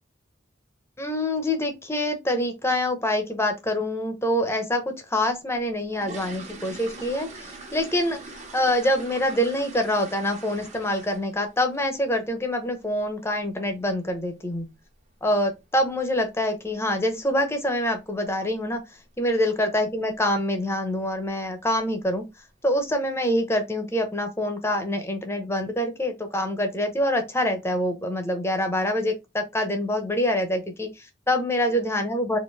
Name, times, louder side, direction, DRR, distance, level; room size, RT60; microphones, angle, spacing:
voice 1, 1.0-14.7 15.2-18.8 19.2-22.2 22.6-32.4, left 1 dB, 15° left, 0.9 m, -25 dB
sound 1, 5.6-11.5 11.7-12.0 12.4-12.5 12.8-13.0 13.4-13.6 13.8-13.9 14.5-14.6 14.9-15.0 15.6-15.9 16.1-16.2 16.6-16.9 17.2-17.3 17.7-17.8 18.4-18.7 19.1-19.4 19.7-19.8 20.3-20.4 21.1-21.3 21.7-22.2 22.6-22.7, right 3 dB, 35° right, 1.3 m, -43 dB
4.3 x 2.8 x 3.4 m
head